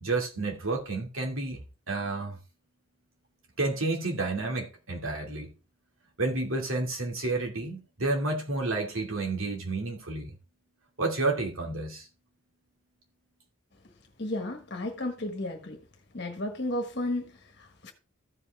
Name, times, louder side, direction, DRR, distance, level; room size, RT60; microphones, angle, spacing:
voice 1, 0.0-1.6 1.9-2.4 3.6-5.5 6.2-10.3 11.0-12.1, right 2 dB, 80° right, 2.6 m, -30 dB
voice 2, 14.2-15.8 16.1-17.9, left 1 dB, 55° left, 1.4 m, -33 dB
14.5 x 5.4 x 3.6 m
head